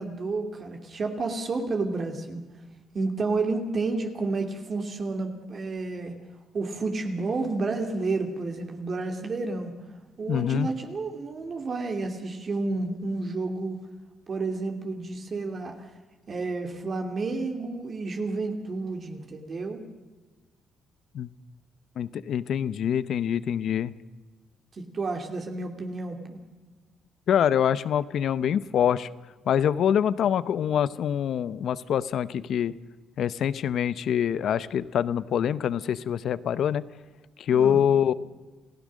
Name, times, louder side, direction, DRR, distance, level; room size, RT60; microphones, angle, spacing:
voice 1, 0.0-2.4 2.9-6.1 6.5-9.7 10.2-13.8 14.3-15.9 16.3-19.9 24.7-26.4 37.5-37.8, right 3 dB, 45° right, 4 dB, 2.6 m, -30 dB
voice 2, 10.3-10.7 21.1-21.3 22.0-23.9 27.3-29.1 29.5-32.7 33.2-36.8 37.4-38.1, left 9 dB, 70° left, 16 dB, 0.8 m, -25 dB
28.0 x 16.0 x 6.4 m, 1.3 s
cardioid pair, 90°, 0 cm